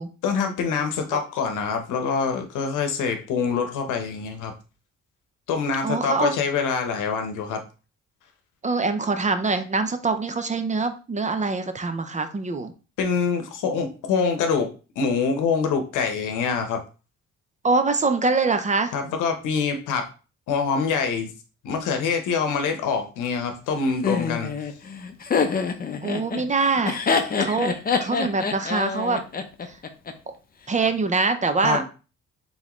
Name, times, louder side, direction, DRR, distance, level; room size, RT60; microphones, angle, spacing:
voice 1, 0.2-4.5 5.5-7.6 13.0-14.7 15.0-16.8 18.9-20.1 20.5-21.3 21.6-24.5 31.6-31.8, left 5 dB, 85° left, 5 dB, 0.9 m, -25 dB
voice 2, 5.8-6.4 8.6-12.7 17.6-18.9 26.0-27.0 27.4-29.2 30.7-31.8, right 3 dB, 25° right, 9 dB, 0.5 m, -24 dB
Laughter, 24.0-30.1, left 5 dB, 30° left, 0.6 m, -26 dB
3.8 x 3.8 x 3.0 m, 0.34 s
cardioid pair, 90°, 30 cm